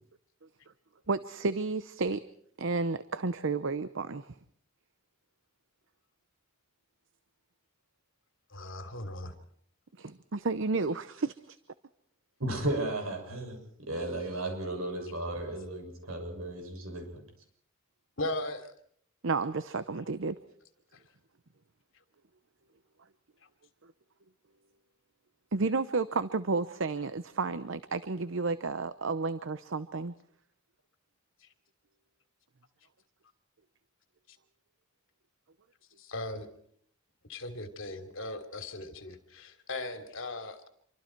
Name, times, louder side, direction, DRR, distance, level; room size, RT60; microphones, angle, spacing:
voice 1, 1.1-2.2 2.6-4.3 10.0-11.6 19.2-20.4 25.5-30.1, right 3 dB, 65° right, 13 dB, 0.8 m, -31 dB
voice 2, 8.5-9.3 18.2-18.7 20.9-21.0 31.4-31.5 34.3-34.4 36.0-36.5 37.3-40.7, left 2 dB, 65° left, 7 dB, 3.0 m, -38 dB
voice 3, 12.4-13.6 13.9-17.2, right 1 dB, 90° right, 4 dB, 7.1 m, -34 dB
27.0 x 24.5 x 4.6 m, 0.65 s
head